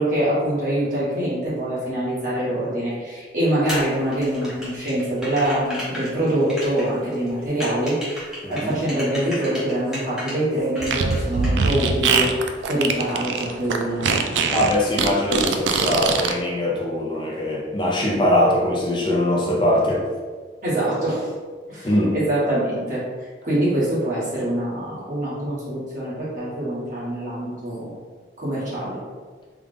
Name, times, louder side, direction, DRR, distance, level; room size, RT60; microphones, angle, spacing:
voice 1, 0.0-8.2 8.5-12.3 12.7-14.5 20.6-21.3 21.7-23.0 23.4-27.9 28.4-29.0, right 1 dB, 45° right, -9 dB, 1.2 m, -24 dB
sound 1, 3.7-10.4 10.7-12.3 12.6-13.4, equal, 5° right, 0.8 m, -34 dB
voice 2, 8.4-8.8 14.5-20.0 21.8-22.2, left 1 dB, 25° left, -2 dB, 0.6 m, -21 dB
Fart, 10.8-16.3, right 5 dB, 85° right, 0.3 m, -22 dB
3.5 x 2.4 x 3.6 m, 1.5 s
head